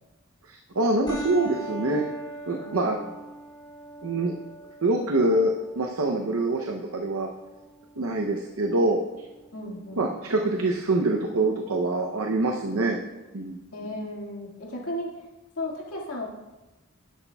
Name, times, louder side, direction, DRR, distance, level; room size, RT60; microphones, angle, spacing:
voice 1, 0.5-2.0 2.5-3.0 4.0-4.3 4.8-7.3 8.0-9.0 10.0-13.0 13.3-13.6, right 2 dB, 75° right, 2 dB, 0.7 m, -25 dB
sound 1, 1.1-10.0, right 1 dB, 20° left, 2.2 m, -42 dB
voice 2, 2.5-3.0 9.5-10.1 13.7-15.1 15.6-16.3, left 1 dB, 80° left, -3 dB, 2.0 m, -35 dB
11.0 x 10.0 x 2.3 m, 1.1 s
head